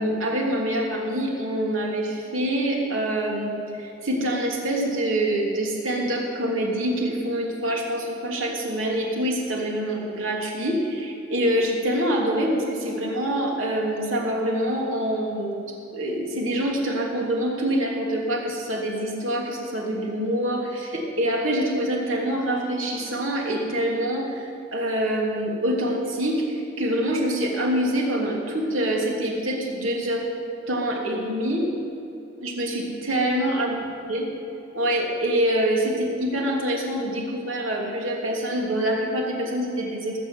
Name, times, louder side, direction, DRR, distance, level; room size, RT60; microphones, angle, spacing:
voice 1, 0.0-15.6 15.9-30.3 30.7-31.7 32.4-33.8 34.1-34.3 34.7-40.2, right 1 dB, 85° right, -1 dB, 3.0 m, -25 dB
19.5 x 7.1 x 8.2 m, 2.9 s
head